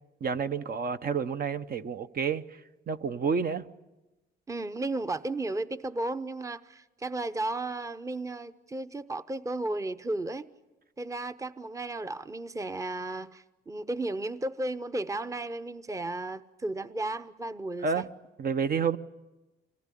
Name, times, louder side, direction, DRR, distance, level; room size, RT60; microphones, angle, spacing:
voice 1, 0.2-2.4 2.9-3.6 17.8-18.1 18.4-19.0, right 6 dB, 50° right, 0.9 m, -29 dB
voice 2, 4.5-10.5 11.0-18.0, right 2 dB, 15° right, 0.8 m, -34 dB
25.0 x 18.5 x 10.0 m
cardioid pair, 90°, 20 cm